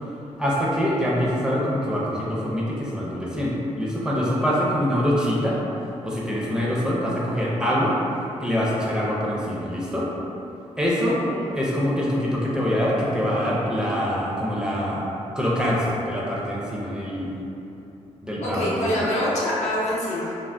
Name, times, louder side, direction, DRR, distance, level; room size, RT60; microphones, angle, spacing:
voice 1, 0.4-5.6 5.8-8.0 8.4-10.1 10.8-11.2 11.5-15.1 15.3-17.3 18.2-18.9, equal, 5° right, -6 dB, 0.5 m, -24 dB
voice 2, 11.1-11.4 18.4-20.3, left 1 dB, 70° left, -7 dB, 0.7 m, -25 dB
2.5 x 2.0 x 3.3 m, 2.8 s
cardioid pair, 90°, 12 cm